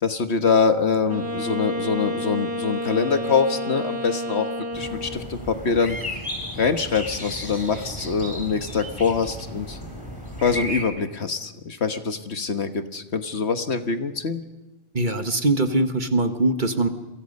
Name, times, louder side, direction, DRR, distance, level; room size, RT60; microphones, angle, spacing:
voice 1, 0.0-4.5 4.7-6.0 6.5-9.8 10.4-14.4, left 5 dB, 60° left, 8 dB, 1.6 m, -24 dB
Wind instrument woodwind instrument, 1.1-5.4, left 1 dB, 75° right, 2.8 m, -30 dB
sound 1, 4.7-10.8, equal, 15° left, 3.6 m, -34 dB
voice 2, 14.9-16.9, right 2 dB, 40° right, 7 dB, 1.5 m, -22 dB
29.5 x 23.5 x 5.4 m, 1.0 s
omnidirectional pair, 1.3 m